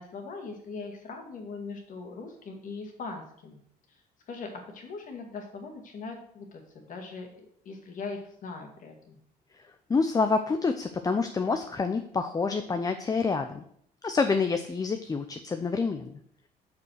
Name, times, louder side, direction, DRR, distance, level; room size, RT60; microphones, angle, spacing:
voice 1, 0.0-3.6 4.3-9.2, left 4 dB, 50° left, 3 dB, 2.1 m, -40 dB
voice 2, 9.9-13.6 14.0-16.2, left 4 dB, 20° left, 8 dB, 0.6 m, -27 dB
6.9 x 5.5 x 6.4 m, 0.67 s
cardioid pair, 110°, 17 cm